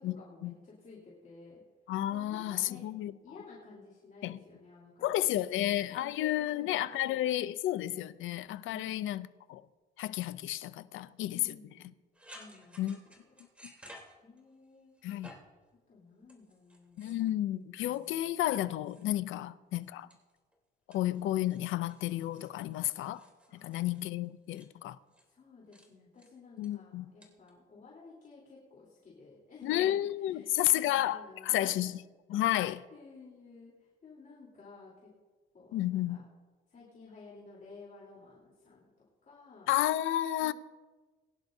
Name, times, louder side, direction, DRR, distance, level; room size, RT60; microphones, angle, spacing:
voice 1, 0.0-1.6 2.1-2.8 3.2-7.2 8.6-9.0 11.3-11.9 12.3-12.9 14.2-14.9 15.9-18.4 19.3-19.5 23.5-23.8 25.3-31.7 32.5-35.1 35.5-36.2 36.7-38.9 39.2-39.8 40.4-40.5, left 4 dB, 40° left, 3.5 m, -54 dB
voice 2, 1.9-3.1 4.2-4.4 5.0-9.6 10.0-11.6 12.8-13.0 15.0-15.3 17.0-20.1 20.9-23.3 23.5-25.0 26.6-27.1 29.6-31.9 32.3-32.8 35.7-36.2 39.7-40.5, left 13 dB, 80° left, 0.5 m, -31 dB
sound 1, 12.1-14.6 15.0-15.6 16.2-17.3 17.8-19.4 19.7-20.5 20.9-24.7 25.1-25.3 25.7-25.9 26.2-26.7 27.2-27.5, equal, 5° right, 3.3 m, -56 dB
22.5 x 10.5 x 2.7 m
cardioid pair, 90°, 20 cm